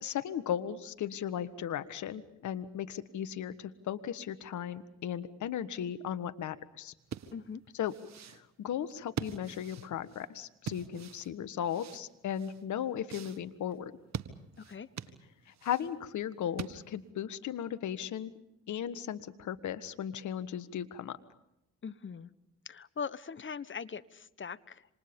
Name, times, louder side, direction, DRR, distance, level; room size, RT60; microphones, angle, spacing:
voice 1, 0.0-6.9 7.8-7.9 8.3-13.9 15.6-18.3 18.7-21.2, left 9 dB, 60° left, 12 dB, 1.5 m, -36 dB
sound 1, 7.0-17.1, right 8 dB, 55° right, 1.7 m, -44 dB
voice 2, 7.3-7.6 14.6-14.9 21.8-22.3 22.6-25.0, left 6 dB, 35° left, 15 dB, 1.2 m, -41 dB
28.0 x 26.0 x 5.4 m, 0.85 s
hypercardioid pair, 50°, 33 cm